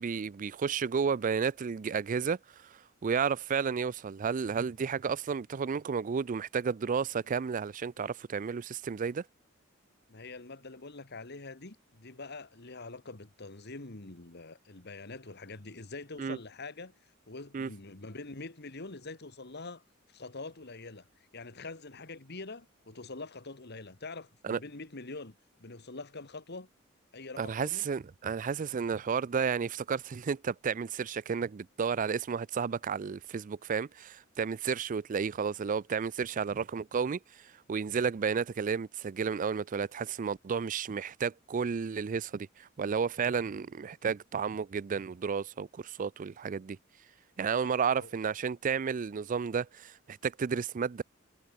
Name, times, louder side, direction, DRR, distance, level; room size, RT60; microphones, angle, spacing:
voice 1, 0.0-9.2 16.2-16.4 17.5-17.7 24.4-24.6 27.4-46.8 47.4-51.0, right 6 dB, 40° right, 0.4 m, -32 dB
voice 2, 10.1-16.9 17.3-19.8 20.1-25.3 25.6-26.7 27.1-27.9 47.5-47.7 48.0-48.1, left 3 dB, 55° left, 2.0 m, -44 dB
head